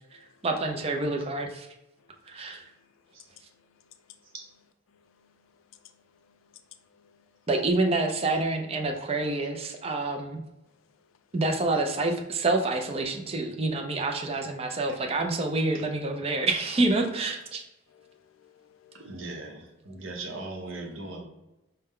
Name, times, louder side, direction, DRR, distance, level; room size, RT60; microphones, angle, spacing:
voice 1, 0.4-1.7 2.3-2.6 7.5-10.4 11.3-17.6, right 2 dB, 30° right, 0.5 m, -27 dB
voice 2, 6.2-6.6 7.0-7.2 10.1-10.2 17.9-19.1, left 9 dB, 75° left, 0.3 m, -59 dB
voice 3, 18.9-21.2, right 2 dB, 75° right, 0.9 m, -39 dB
5.4 x 2.2 x 3.6 m
head